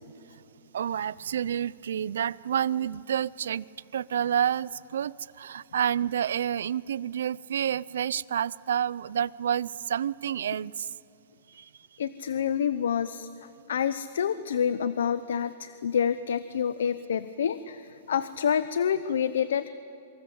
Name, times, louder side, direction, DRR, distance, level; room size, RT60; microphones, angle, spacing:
voice 1, 0.7-3.6 3.9-10.9 11.6-11.7, right 9 dB, 75° right, 22 dB, 0.5 m, -29 dB
voice 2, 12.0-13.3 13.7-19.7, left 8 dB, 80° left, 14 dB, 0.8 m, -28 dB
27.0 x 24.5 x 7.9 m, 2.8 s
supercardioid pair, 180°, 0 cm